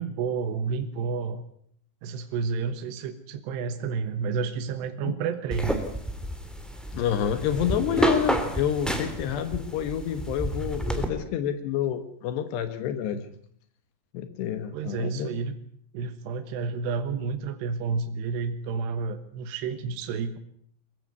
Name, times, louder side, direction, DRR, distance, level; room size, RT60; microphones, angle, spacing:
voice 1, 0.0-1.4 2.0-5.8 13.0-13.2 14.7-15.6 15.9-20.4, right 5 dB, 80° right, 9 dB, 3.4 m, -30 dB
sound 1, 5.5-11.1, equal, ahead, 1.8 m, -29 dB
voice 2, 6.9-13.2 14.1-15.4, left 9 dB, 75° left, 10 dB, 3.4 m, -28 dB
23.0 x 16.0 x 9.6 m, 0.66 s
omnidirectional pair, 4.9 m